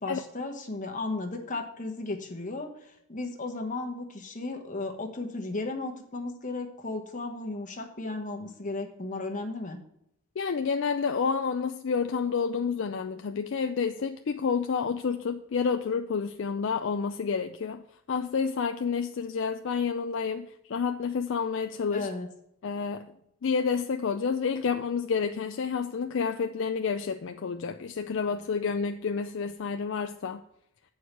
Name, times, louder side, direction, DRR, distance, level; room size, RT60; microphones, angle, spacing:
voice 1, 0.0-9.8 21.9-22.3, left 2 dB, 35° left, 3 dB, 1.2 m, -35 dB
voice 2, 10.4-17.8 18.1-22.1 22.6-23.1 23.4-30.4, left 5 dB, 55° left, 6 dB, 0.4 m, -29 dB
7.9 x 4.7 x 6.6 m, 0.78 s
head